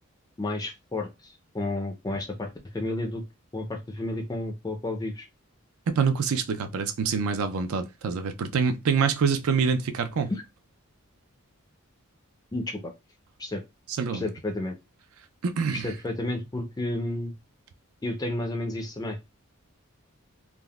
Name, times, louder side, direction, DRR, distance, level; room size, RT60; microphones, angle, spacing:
voice 1, 0.4-3.2 3.5-5.3 10.3-10.4 12.5-12.9 13.4-13.6 14.1-14.7 15.8-17.3 18.0-19.2, left 2 dB, 15° left, 0.4 m, -31 dB
voice 2, 5.9-10.3 13.9-14.2 15.4-15.9, right 5 dB, 75° right, 0.4 m, -26 dB
3.5 x 2.0 x 2.2 m
head